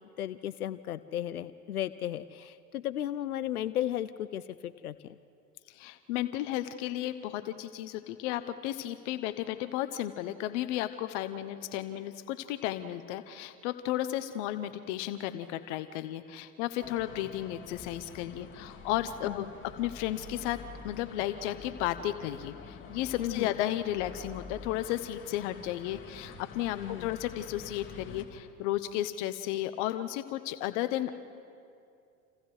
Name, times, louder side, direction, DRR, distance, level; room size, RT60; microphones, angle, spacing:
voice 1, 0.2-5.2 19.2-19.5 23.2-23.5 26.7-27.1, left 11 dB, 85° left, 14 dB, 0.6 m, -35 dB
voice 2, 5.7-19.5 19.8-20.6 20.8-31.1, left 13 dB, 55° left, 11 dB, 1.0 m, -34 dB
sound 1, 16.8-28.2, left 3 dB, 25° left, 2.5 m, -48 dB
sound 2, 16.8-19.8, equal, 5° right, 3.4 m, -55 dB
29.5 x 29.0 x 3.3 m, 2.5 s
hypercardioid pair, 85°, 43 cm